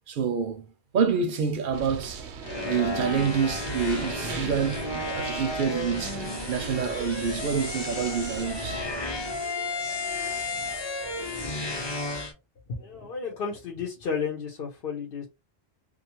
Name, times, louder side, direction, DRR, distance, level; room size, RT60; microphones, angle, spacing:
voice 1, 0.1-0.7 0.9-2.3 2.6-6.2 6.5-8.8, right 6 dB, 60° right, 0.6 m, -27 dB
sound 1, 1.7-8.9, right 5 dB, 90° right, 0.9 m, -40 dB
sound 2, 2.4-12.3, left 2 dB, 30° left, 0.6 m, -33 dB
voice 2, 12.7-15.3, left 5 dB, 60° left, 0.8 m, -32 dB
2.4 x 2.4 x 2.9 m
omnidirectional pair, 1.1 m